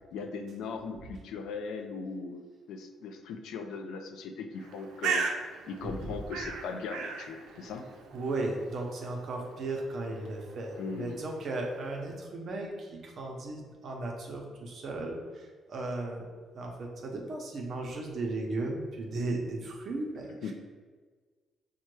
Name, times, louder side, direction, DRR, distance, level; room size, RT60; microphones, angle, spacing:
voice 1, 0.1-5.2 5.7-7.9 10.8-11.2 20.4-20.5, left 4 dB, 80° left, 6 dB, 0.4 m, -39 dB
Bird, 4.6-12.2, right 5 dB, 85° right, 0.4 m, -39 dB
voice 2, 5.8-6.2 8.1-16.3 16.5-20.5, right 2 dB, 45° right, 0 dB, 0.7 m, -36 dB
5.5 x 2.2 x 3.1 m, 1.5 s
cardioid pair, 145°, 0 cm